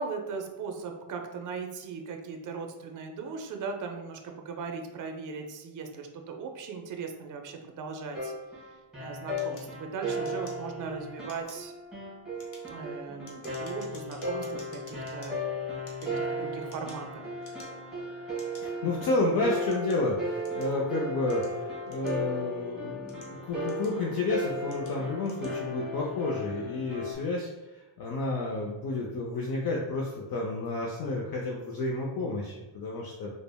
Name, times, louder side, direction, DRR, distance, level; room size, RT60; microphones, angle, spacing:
voice 1, 0.0-8.3 9.0-11.7 12.7-15.4 16.0-17.3, right 5 dB, 40° right, 4 dB, 0.4 m, -38 dB
sound 1, 8.1-27.1, equal, ahead, 1.2 m, -36 dB
sound 2, 9.4-10.9 11.2-11.7 12.2-15.3 15.8-17.1 17.4-17.9 18.4-18.6 19.3-20.8 21.3-22.5 22.9-24.1 24.7-25.0 25.2-25.6, left 3 dB, 85° left, 0.8 m, -53 dB
voice 2, 18.6-33.3, left 2 dB, 50° left, -3 dB, 0.5 m, -31 dB
3.2 x 2.1 x 2.2 m, 1.1 s
cardioid pair, 90°, 48 cm